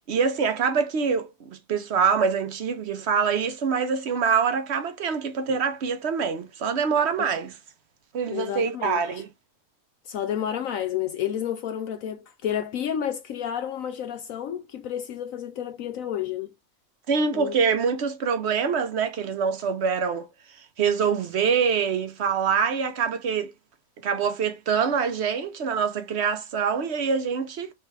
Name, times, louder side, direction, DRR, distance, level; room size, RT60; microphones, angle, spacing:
voice 1, 0.0-7.5 8.1-9.3 17.1-20.3 20.8-23.5 24.0-27.7, right 6 dB, 55° right, 0.9 m, -25 dB
voice 2, 8.3-9.2 10.1-16.5 17.3-17.6, left 10 dB, 70° left, 0.9 m, -30 dB
3.4 x 3.3 x 4.6 m
omnidirectional pair, 1.6 m